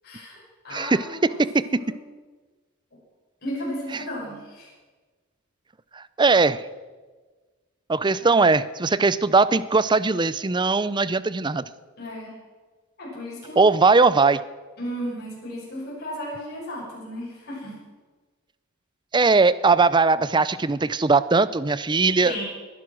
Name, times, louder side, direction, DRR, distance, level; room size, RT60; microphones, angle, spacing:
voice 1, 0.0-1.9 3.4-4.7 8.2-8.4 12.0-12.4 13.0-13.6 14.8-17.8 22.2-22.4, equal, 50° left, -5 dB, 6.7 m, -35 dB
voice 2, 0.7-1.8 3.9-4.0 6.0-6.6 7.9-11.6 13.6-14.4 19.1-22.4, right 3 dB, 20° right, 16 dB, 0.5 m, -20 dB
21.0 x 11.0 x 6.2 m, 1.4 s
head